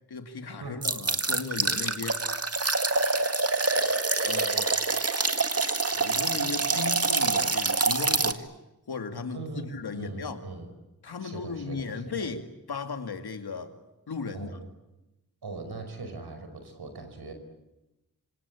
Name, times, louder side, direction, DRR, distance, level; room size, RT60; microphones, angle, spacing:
voice 1, 0.1-2.2 4.2-4.7 5.9-8.5 8.9-9.4 9.7-10.4 11.0-13.8 14.1-14.6, left 4 dB, 85° left, 7 dB, 2.5 m, -36 dB
sound 1, 0.8-8.3, right 3 dB, 40° right, 1.9 m, -26 dB
voice 2, 9.3-10.7 11.2-12.3 14.3-14.6 15.4-17.3, right 3 dB, 85° right, 7 dB, 5.3 m, -40 dB
27.5 x 25.0 x 8.6 m, 0.98 s
cardioid pair, 50°, 37 cm